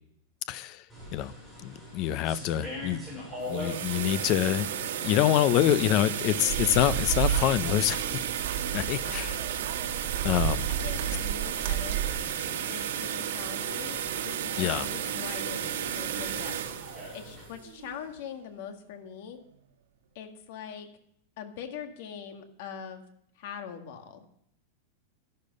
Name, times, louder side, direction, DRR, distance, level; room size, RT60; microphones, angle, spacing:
voice 1, 0.5-0.8 1.1-1.3 1.6-3.0 3.5-4.7 5.0-8.0 8.7-9.3 10.2-10.7 14.6-14.9, left 12 dB, 30° left, 15 dB, 0.6 m, -26 dB
Hallway with Water Fountain Noise, 0.9-17.4, left 1 dB, 10° left, 7.4 m, -45 dB
sound 1, 3.3-18.2, right 9 dB, 90° right, 1.8 m, -33 dB
sound 2, 6.5-12.1, right 9 dB, 60° right, 1.8 m, -32 dB
voice 2, 8.9-9.4 10.7-12.0 12.6-14.0 14.2-15.6 15.9-19.4 20.2-20.9 21.4-23.0 23.4-24.2, left 8 dB, 50° left, 5 dB, 1.9 m, -42 dB
12.5 x 12.0 x 5.4 m, 0.71 s
supercardioid pair, 175°, 0 cm